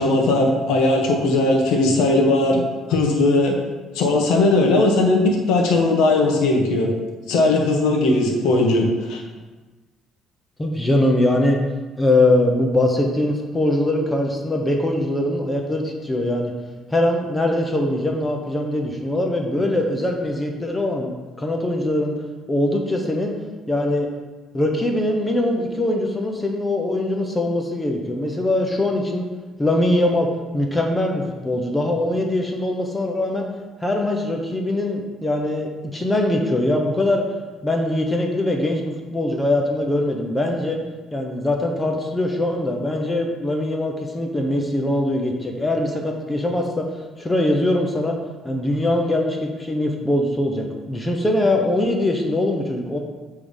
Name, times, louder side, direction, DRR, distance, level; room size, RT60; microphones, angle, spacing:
voice 1, 0.0-2.6 2.9-3.6 3.9-6.9 7.3-9.2, left 2 dB, 85° left, 0 dB, 1.4 m, -18 dB
voice 2, 10.6-11.6 12.0-16.5 16.9-21.1 21.4-22.1 22.5-23.3 23.7-24.1 24.5-29.3 29.6-33.5 33.8-37.3 37.6-40.8 41.1-48.2 48.4-53.0, left 1 dB, 10° left, 2 dB, 0.7 m, -22 dB
8.4 x 3.7 x 5.0 m, 1.3 s
cardioid pair, 145°, 0 cm